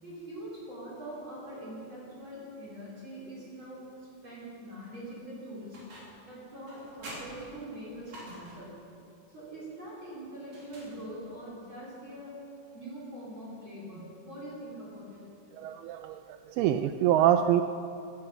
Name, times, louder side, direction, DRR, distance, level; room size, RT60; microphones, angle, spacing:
voice 1, 0.0-3.9 4.2-5.8 6.3-8.7 9.3-12.3 12.7-15.2, right 1 dB, 30° right, -7 dB, 4.5 m, -43 dB
sound 1, 5.7-6.3 6.7-8.8 10.4-11.4, right 1 dB, 45° right, 4.3 m, -47 dB
voice 2, 15.6-16.2 16.6-17.6, right 11 dB, 80° right, 8 dB, 2.4 m, -24 dB
16.0 x 13.5 x 5.7 m, 2.5 s
omnidirectional pair, 4.7 m